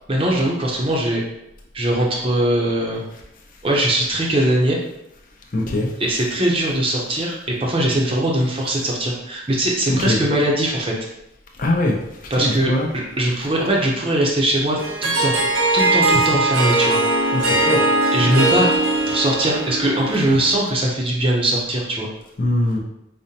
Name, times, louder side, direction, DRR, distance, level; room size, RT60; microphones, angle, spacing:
voice 1, 0.1-1.2 1.7-3.0 3.6-4.8 6.0-10.9 12.3-15.3 15.7-17.5 18.1-18.7 19.1-22.1, right 1 dB, 25° right, -2 dB, 0.6 m, -21 dB
voice 2, 5.5-5.9 10.0-10.2 11.6-12.0 12.4-12.9 17.3-17.8 22.4-22.8, left 1 dB, 45° left, 0 dB, 0.6 m, -21 dB
Harp, 14.8-20.6, right 2 dB, 90° right, 0.7 m, -20 dB
5.1 x 2.1 x 2.8 m, 0.86 s
head